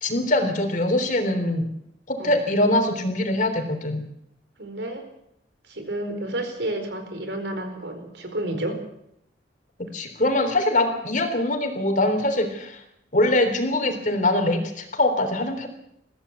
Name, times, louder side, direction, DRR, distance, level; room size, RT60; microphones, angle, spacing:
voice 1, 0.0-1.7 2.1-4.0 9.8-12.8 13.1-15.7, left 1 dB, 45° left, 6 dB, 3.5 m, -23 dB
voice 2, 4.6-5.0 5.7-8.8, right 1 dB, 70° right, 7 dB, 4.5 m, -30 dB
22.0 x 15.5 x 8.4 m, 0.77 s
head